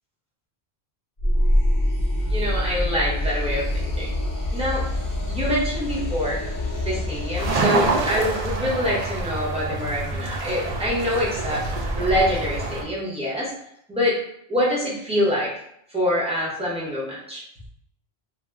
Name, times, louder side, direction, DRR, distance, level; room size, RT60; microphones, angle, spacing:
sound 1, 1.2-7.6, left 1 dB, 25° left, 0.5 m, -25 dB
voice 1, 2.3-4.1 4.5-4.9 5.3-6.4 6.8-11.6 12.0-13.5 13.9-14.2 14.5-15.5 15.9-17.4, equal, 5° right, -7 dB, 0.7 m, -25 dB
sound 2, 7.3-12.8, right 2 dB, 50° right, 0.5 m, -26 dB
2.6 x 2.1 x 3.4 m, 0.71 s
omnidirectional pair, 1.1 m